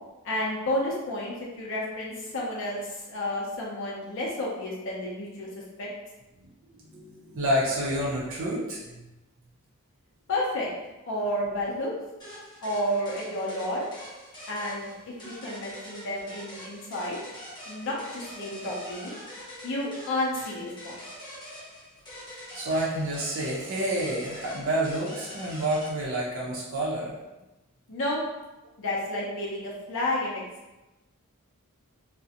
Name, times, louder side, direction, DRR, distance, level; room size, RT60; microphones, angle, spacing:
voice 1, 0.2-5.9 10.3-10.7 11.1-11.9 12.6-13.8 14.5-17.2 17.7-19.1 19.6-21.0 27.9-28.2 28.8-30.4, left 1 dB, 60° left, -4 dB, 0.5 m, -31 dB
voice 2, 6.4-9.1 22.3-27.1, right 1 dB, 65° right, -4 dB, 0.5 m, -29 dB
sound 1, 12.2-25.9, equal, 20° left, 0.7 m, -44 dB
2.5 x 2.0 x 2.7 m, 1.1 s
head